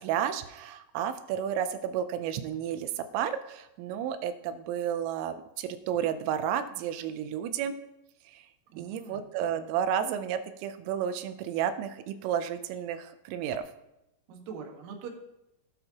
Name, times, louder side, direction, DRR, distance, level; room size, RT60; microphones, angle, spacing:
voice 1, 0.0-7.7 8.3-8.4 8.8-13.6, right 9 dB, 85° right, 10 dB, 3.3 m, -32 dB
voice 2, 8.7-9.3 14.3-15.1, right 5 dB, 70° right, 1 dB, 1.7 m, -42 dB
17.0 x 8.9 x 2.9 m, 0.89 s
omnidirectional pair, 5.8 m